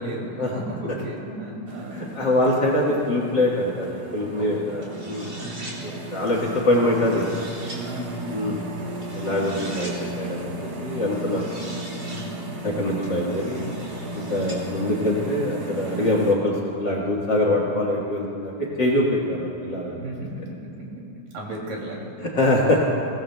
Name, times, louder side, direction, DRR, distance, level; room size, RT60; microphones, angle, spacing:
voice 1, 0.0-2.1 4.1-4.6 4.9-5.7 6.7-6.9 7.7-8.3 10.9-11.6 12.0-12.5 17.4-17.8 19.9-20.3 20.8-21.1 21.3-22.3, right 1 dB, 90° right, -2 dB, 4.3 m, -36 dB
sound 1, 1.7-16.3, right 1 dB, 60° right, 1.0 m, -35 dB
voice 2, 1.9-5.3 5.8-7.3 8.3-9.9 10.2-10.5 10.8-11.4 12.6-13.7 14.1-20.0 22.4-22.8, left 1 dB, 50° left, -3 dB, 1.5 m, -24 dB
sound 2, 4.8-5.8 6.7-7.8 9.0-10.0 11.1-12.3 13.0-14.6, right 1 dB, 30° right, 2.8 m, -41 dB
23.0 x 17.5 x 2.2 m, 2.8 s
omnidirectional pair, 3.7 m